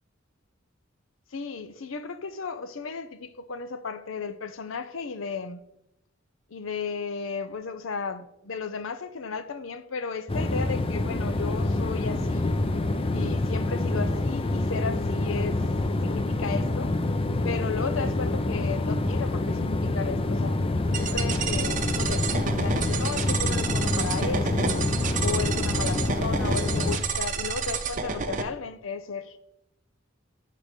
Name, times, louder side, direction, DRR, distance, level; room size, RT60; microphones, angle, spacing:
voice 1, 1.3-5.6 6.5-12.5 13.1-15.6 16.0-16.9 17.4-20.6 20.9-24.9 25.2-29.4, left 5 dB, 75° left, 0.6 m, -34 dB
sound 1, 10.3-27.0, left 2 dB, 30° left, 0.5 m, -27 dB
sound 2, 20.9-28.4, right 6 dB, 40° right, 0.7 m, -30 dB
9.7 x 3.8 x 6.5 m
head